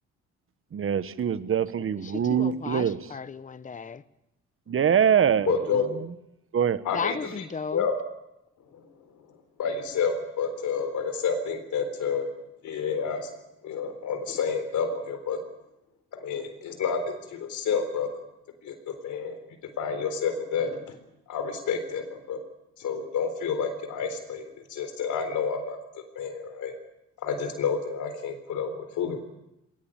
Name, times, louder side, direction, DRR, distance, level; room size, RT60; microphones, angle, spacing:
voice 1, 0.7-3.0 4.7-5.6 6.5-6.8, right 8 dB, 45° right, 1.2 m, -23 dB
voice 2, 2.0-4.0 6.9-7.9, left 6 dB, 25° left, 0.9 m, -35 dB
voice 3, 5.5-6.0 6.8-7.4 7.7-8.0 9.6-12.3 12.6-13.3 13.6-15.4 16.1-18.2 18.6-19.4 19.8-21.0 21.3-22.4 22.8-26.7 27.2-29.2, left 6 dB, 75° left, 4.0 m, -29 dB
21.0 x 18.5 x 8.8 m
cardioid pair, 90°, 30 cm